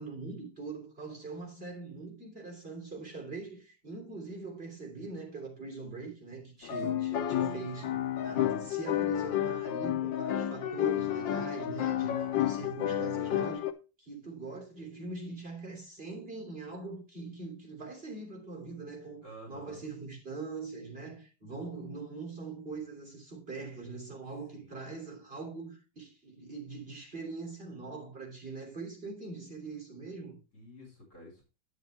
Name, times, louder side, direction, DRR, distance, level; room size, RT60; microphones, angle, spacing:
voice 1, 0.0-13.7 14.0-30.4, right 3 dB, 30° right, 3.4 m, -42 dB
sound 1, 6.6-13.7, left 11 dB, 80° left, 1.6 m, -31 dB
voice 2, 19.2-19.8 24.5-24.9 30.5-31.4, equal, 40° left, 4.6 m, -51 dB
10.0 x 7.5 x 3.3 m
omnidirectional pair, 2.0 m